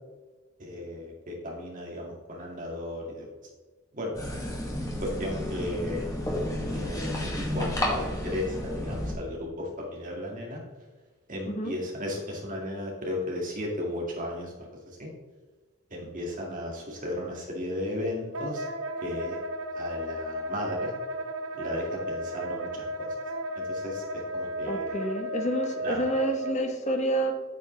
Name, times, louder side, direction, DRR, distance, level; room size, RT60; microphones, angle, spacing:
voice 1, 0.6-3.3 3.9-4.1 5.0-6.1 6.7-10.6 11.3-15.1 15.9-18.7 19.0-19.4 19.7-20.9 21.5-22.9 23.6-24.9 25.8-26.0, left 1 dB, 40° right, -1 dB, 2.3 m, -35 dB
sound 1, 4.1-9.1, left 1 dB, 15° left, 2.3 m, -31 dB
Wind instrument woodwind instrument, 18.3-26.5, equal, 85° right, 0.8 m, -34 dB
voice 2, 24.7-27.3, right 1 dB, 35° left, 5 dB, 1.1 m, -28 dB
8.7 x 8.3 x 3.4 m, 1.3 s
head